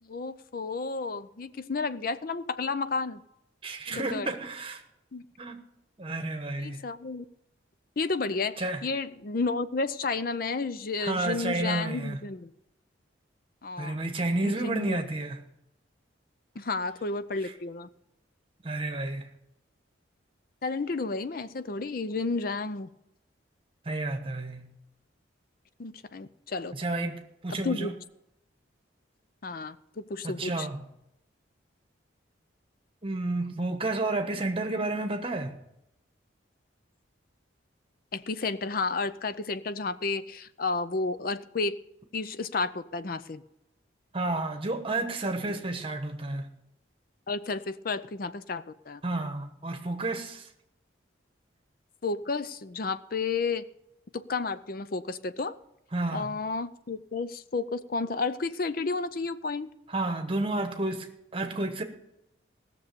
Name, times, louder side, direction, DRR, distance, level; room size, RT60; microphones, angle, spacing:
voice 1, 0.0-3.2 3.9-4.3 5.1-5.2 6.6-7.2 8.0-12.5 13.6-14.0 14.4-15.1 16.6-17.9 20.6-22.9 25.8-26.7 27.5-27.9 29.4-30.7 38.1-41.8 42.1-43.4 47.3-49.0 52.0-53.6 54.1-55.6 56.1-59.7, left 4 dB, 45° left, 0.5 m, -32 dB
voice 2, 3.6-4.8 5.4-5.6 6.0-6.8 8.6-8.8 11.0-12.2 13.8-15.4 17.4-17.5 18.6-19.3 23.8-24.7 26.7-27.9 30.2-30.8 33.0-35.6 44.1-46.5 49.0-50.5 55.9-56.3 59.9-61.1 61.3-61.8, right 2 dB, 25° right, 1.2 m, -31 dB
17.5 x 6.8 x 6.8 m
head